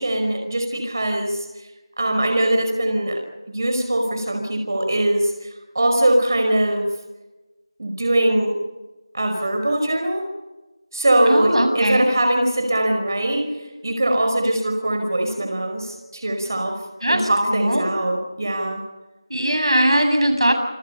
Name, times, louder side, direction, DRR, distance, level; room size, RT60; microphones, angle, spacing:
voice 1, 0.0-1.7 2.0-3.2 3.5-6.9 7.8-8.5 9.1-10.3 10.9-13.6 13.8-16.8 17.1-18.8, right 1 dB, 45° right, 4 dB, 5.0 m, -21 dB
voice 2, 11.3-12.1 17.0-17.9 19.3-20.5, right 1 dB, 90° right, 6 dB, 7.7 m, -20 dB
28.5 x 24.5 x 5.6 m, 1.1 s
figure-of-eight pair, 175°, 3 cm